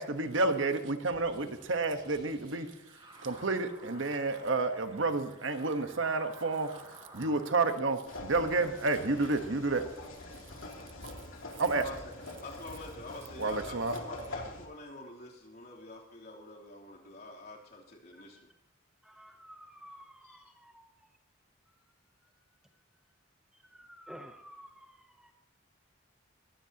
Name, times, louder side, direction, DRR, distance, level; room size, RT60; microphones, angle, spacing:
voice 1, 0.0-2.7 3.2-9.8 11.5-11.8 13.4-13.9, right 3 dB, 75° right, 8 dB, 1.2 m, -30 dB
sound 1, 1.1-7.5, right 1 dB, 25° right, 6.5 m, -54 dB
sound 2, 8.1-14.6, left 2 dB, 90° left, 2.9 m, -44 dB
voice 2, 11.7-12.1 12.4-18.5 20.2-20.5, left 2 dB, 50° left, -3 dB, 3.3 m, -47 dB
voice 3, 19.0-20.9 23.7-25.3, equal, 5° right, 4 dB, 0.7 m, -52 dB
21.0 x 16.0 x 2.9 m, 0.86 s
head